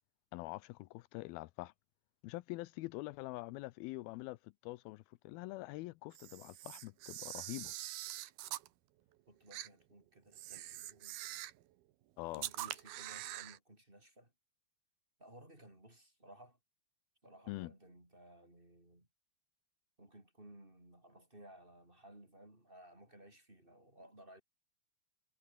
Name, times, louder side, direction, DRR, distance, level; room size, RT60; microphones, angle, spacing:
voice 1, 0.3-1.7 2.2-7.7 12.2-12.4 17.5-17.7, left 20 dB, 85° left, 2.4 m, -45 dB
Camera, 6.1-8.7 9.5-9.7 10.3-11.6 12.3-13.6, right 15 dB, 80° right, 3.0 m, -44 dB
voice 2, 9.3-11.2 12.3-14.3 15.2-16.6 17.2-19.1 20.0-24.4, right 1 dB, 15° right, 5.2 m, -58 dB
omnidirectional pair, 4.3 m